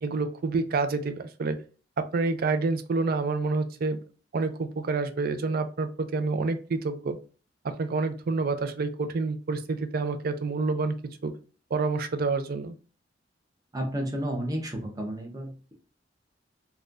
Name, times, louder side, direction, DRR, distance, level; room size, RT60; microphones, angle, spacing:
voice 1, 0.0-1.6 2.0-4.0 4.3-7.2 7.6-11.0 11.2-11.3 11.7-12.7, right 3 dB, 50° right, 10 dB, 0.4 m, -28 dB
voice 2, 13.7-15.7, right 1 dB, 20° right, 1 dB, 0.7 m, -32 dB
4.1 x 2.2 x 2.4 m, 0.37 s
head